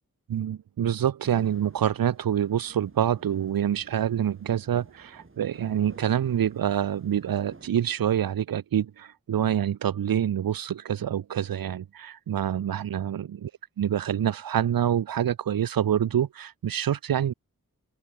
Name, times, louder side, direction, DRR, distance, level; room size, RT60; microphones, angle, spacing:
voice 1, 0.3-13.5 13.8-17.3, right 10 dB, 75° right, 0.7 m, -26 dB
sound 1, 1.2-7.7, right 3 dB, 35° right, 4.1 m, -52 dB
open air
cardioid pair, 45°, 35 cm